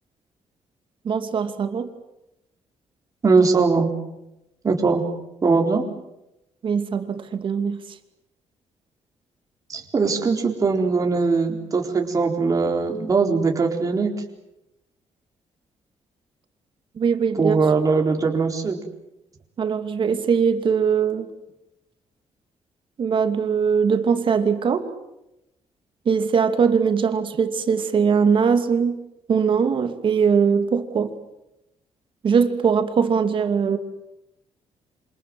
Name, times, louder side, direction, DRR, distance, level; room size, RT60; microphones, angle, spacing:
voice 1, 1.0-1.9 6.6-7.8 17.0-17.6 19.6-21.3 23.0-24.9 26.1-29.0 29.3-31.1 32.2-33.8, right 6 dB, 50° right, 8 dB, 2.6 m, -21 dB
voice 2, 3.2-3.9 4.6-5.0 5.4-5.9 9.7-14.1 17.4-18.8, right 4 dB, 30° right, 2 dB, 4.1 m, -20 dB
27.5 x 27.0 x 7.9 m, 0.90 s
cardioid pair, 140°, 11 cm